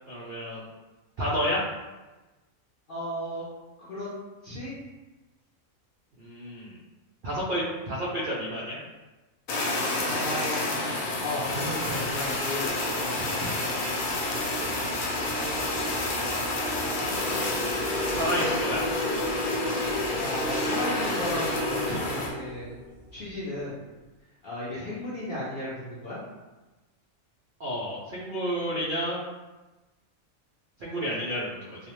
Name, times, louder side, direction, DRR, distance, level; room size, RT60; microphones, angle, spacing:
voice 1, 0.1-0.6 1.2-1.6 6.2-6.8 7.2-8.8 14.6-14.9 16.7-17.7 18.1-18.8 24.7-24.9 27.6-29.3 30.8-31.8, equal, 85° right, -7 dB, 0.4 m, -31 dB
voice 2, 2.9-3.5 3.8-4.1 4.4-4.9 10.0-13.6 20.2-22.8 23.1-23.8 24.4-26.2, left 1 dB, 60° left, -8 dB, 0.6 m, -35 dB
Fire, 9.5-22.3, left 2 dB, 80° left, 1.0 m, -29 dB
sound 1, 13.4-23.1, left 1 dB, 30° right, 0.6 m, -34 dB
2.3 x 2.1 x 2.9 m, 1.1 s
omnidirectional pair, 1.5 m